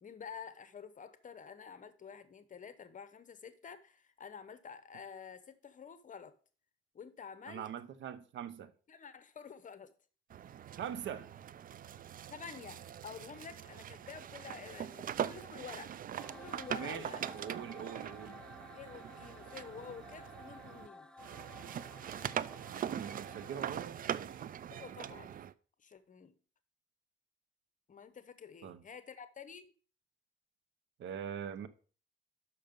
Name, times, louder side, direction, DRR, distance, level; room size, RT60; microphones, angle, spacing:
voice 1, 0.0-6.3 6.9-7.7 8.9-9.9 12.3-15.9 16.3-17.3 18.4-21.1 24.7-25.4 25.8-26.3 27.9-29.7, left 6 dB, 40° left, 0.9 m, -49 dB
voice 2, 7.5-8.7 10.7-11.3 16.8-18.4 22.6-24.4 28.6-28.8 31.0-31.7, right 8 dB, 70° right, 0.8 m, -43 dB
sound 1, 10.3-20.9 21.2-25.5, right 9 dB, 45° right, 0.4 m, -42 dB
sound 2, 16.2-23.8, left 2 dB, 5° left, 0.6 m, -55 dB
6.5 x 5.9 x 5.2 m
cardioid pair, 90°, 20 cm